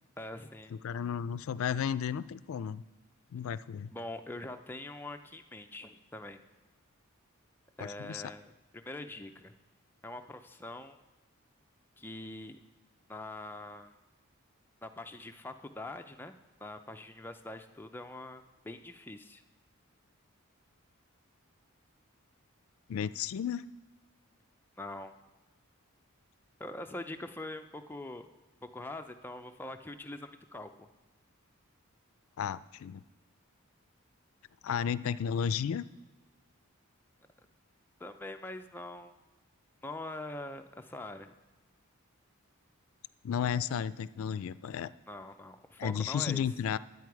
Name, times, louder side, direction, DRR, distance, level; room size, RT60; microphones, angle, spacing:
voice 1, 0.2-0.7 3.9-6.4 7.8-9.5 10.0-11.0 12.0-12.6 13.1-13.9 14.8-19.4 24.8-25.1 26.6-28.3 28.6-30.9 38.0-39.1 39.8-41.4 45.1-46.4, left 2 dB, 10° left, 6 dB, 0.4 m, -43 dB
voice 2, 0.8-2.8 3.3-3.9 7.8-8.3 22.9-23.6 32.4-33.0 34.6-35.8 43.2-44.9 45.8-46.8, left 8 dB, 70° left, 16 dB, 0.3 m, -33 dB
10.5 x 8.4 x 4.7 m, 1.2 s
head